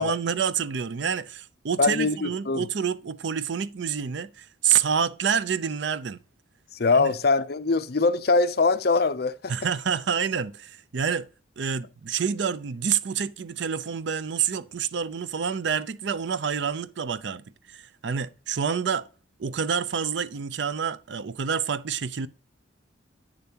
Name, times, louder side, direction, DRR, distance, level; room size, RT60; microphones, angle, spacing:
voice 1, 0.0-6.2 6.9-7.1 9.5-11.3 11.6-19.1 19.4-22.3, right 7 dB, 65° right, 0.5 m, -28 dB
voice 2, 1.8-2.7 6.7-9.5, left 4 dB, 55° left, 0.5 m, -23 dB
9.2 x 6.9 x 2.9 m
head